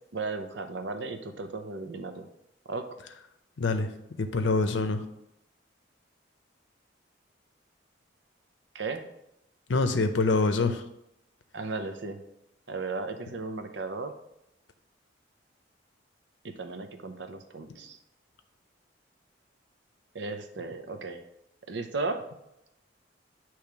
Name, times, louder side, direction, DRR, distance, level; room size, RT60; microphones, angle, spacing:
voice 1, 0.1-2.3 2.7-2.9 8.7-9.0 11.5-12.2 12.7-14.1 16.4-18.0 20.1-21.2 21.7-22.2, right 3 dB, 65° right, 6 dB, 0.7 m, -35 dB
voice 2, 3.6-3.9 4.2-5.0 9.7-10.8, left 3 dB, 75° left, 8 dB, 0.6 m, -25 dB
8.6 x 3.1 x 4.6 m, 0.84 s
head